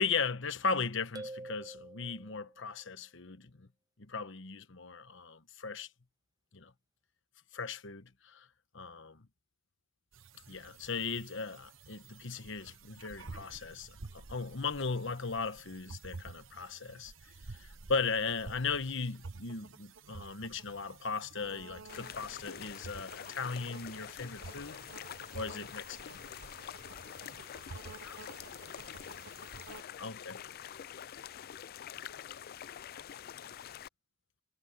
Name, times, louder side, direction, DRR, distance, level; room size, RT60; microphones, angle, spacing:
voice 1, 0.0-3.7 4.0-5.9 6.5-6.7 7.5-8.5 8.7-9.3 10.5-17.1 17.5-24.8 25.3-26.2 26.5-26.6 30.0-30.4, left 5 dB, 60° left, 1.2 m, -37 dB
sound 1, 1.2-2.7, right 2 dB, 15° right, 0.5 m, -46 dB
sound 2, 10.1-29.8, right 3 dB, 65° right, 1.1 m, -51 dB
sound 3, 21.9-33.9, left 9 dB, 45° left, 0.3 m, -46 dB
voice 2, 27.5-33.8, left 4 dB, 80° left, 5.8 m, -62 dB
head